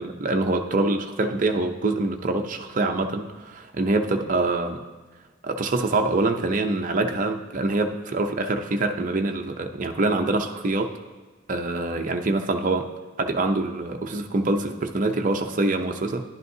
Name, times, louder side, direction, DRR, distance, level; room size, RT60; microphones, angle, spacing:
voice 1, 0.0-4.8 5.4-10.9 11.5-12.9 13.2-16.2, right 2 dB, 35° right, 4 dB, 0.5 m, -25 dB
11.0 x 10.5 x 2.7 m, 1.3 s
head